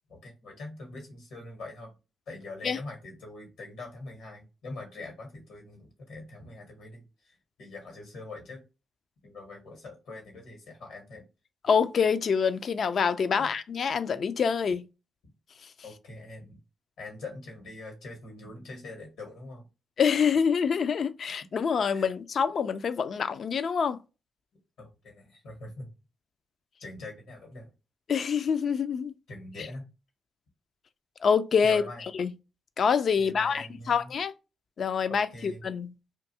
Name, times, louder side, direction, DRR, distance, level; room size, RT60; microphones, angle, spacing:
voice 1, 0.1-1.9 2.3-8.6 9.2-11.2 13.4-13.5 15.8-16.6 17.0-19.6 21.9-22.1 24.8-25.9 26.8-27.7 29.3-29.9 31.6-32.0 33.2-34.1 35.1-35.6, left 2 dB, 80° left, 1.1 m, -43 dB
voice 2, 11.6-14.9 20.0-24.0 28.1-29.1 31.2-32.3 32.8-34.3 34.8-35.9, left 6 dB, 60° left, 0.3 m, -26 dB
2.6 x 2.3 x 2.7 m
hypercardioid pair, 45°, 0 cm